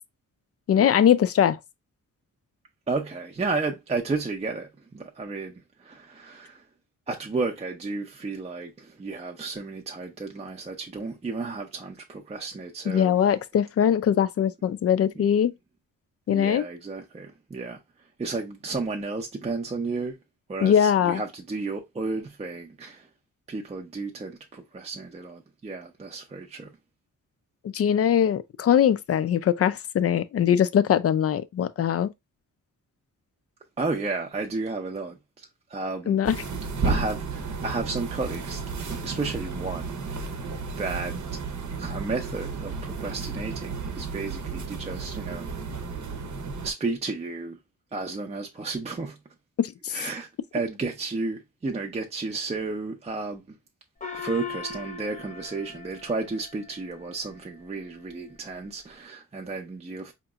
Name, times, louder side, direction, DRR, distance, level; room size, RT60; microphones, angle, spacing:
voice 1, 0.7-1.6 12.9-15.5 16.3-16.6 20.6-21.2 27.7-32.1 36.1-36.4 49.8-50.0, left 9 dB, 45° left, 0.4 m, -21 dB
voice 2, 2.9-6.6 7.1-13.2 15.2-15.3 16.3-17.8 18.2-20.2 20.5-23.1 23.5-26.7 33.8-36.2 36.8-40.4 40.8-41.2 41.8-45.6 46.6-47.6 47.9-49.2 49.9-53.6 54.1-60.1, right 3 dB, 20° right, 0.5 m, -33 dB
sound 1, 36.2-46.7, right 4 dB, 60° right, 0.7 m, -33 dB
Gong, 54.0-56.9, left 5 dB, 20° left, 0.8 m, -39 dB
5.1 x 2.8 x 2.3 m
wide cardioid pair, 155°, 33 cm